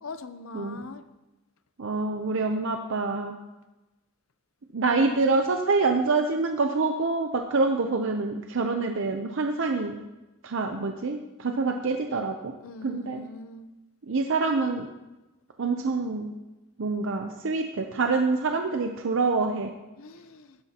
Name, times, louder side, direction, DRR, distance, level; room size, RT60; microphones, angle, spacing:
voice 1, 0.0-1.0 12.6-13.7 20.0-20.6, left 3 dB, 65° left, 0.6 m, -42 dB
voice 2, 1.8-3.3 4.7-9.9 10.4-12.5 12.8-13.3 14.1-14.9 15.6-16.3 16.8-19.7, right 3 dB, 60° right, 0.6 m, -26 dB
16.0 x 12.0 x 2.9 m
head